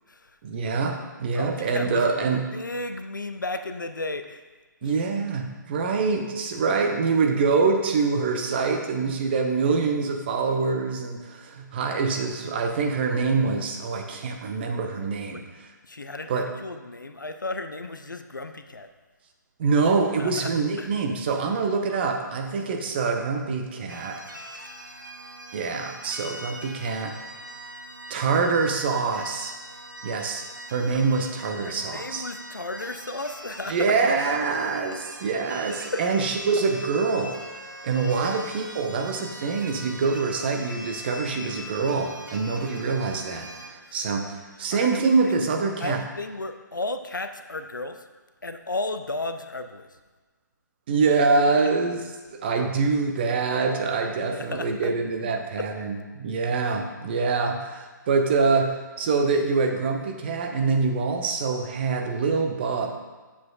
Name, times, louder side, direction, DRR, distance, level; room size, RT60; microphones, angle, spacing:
voice 1, 0.4-2.5 4.8-15.4 16.3-16.5 19.6-24.2 25.5-27.1 28.1-29.5 30.0-30.4 30.7-32.2 33.7-37.4 37.8-46.0 50.9-52.0 52.3-62.9, right 4 dB, 30° right, 3 dB, 0.7 m, -25 dB
voice 2, 1.3-4.4 4.8-4.9 15.3-15.5 15.8-18.9 20.2-20.5 20.8-20.9 31.6-34.0 35.9-36.2 38.2-38.4 43.8-44.0 44.7-45.4 45.8-48.1 48.4-49.9 54.2-54.9 55.6-55.7, left 2 dB, 75° left, 8 dB, 0.6 m, -34 dB
sound 1, 23.9-43.7, right 1 dB, 85° right, 0.9 m, -42 dB
7.6 x 7.1 x 2.4 m, 1.3 s
figure-of-eight pair, 135°, 10 cm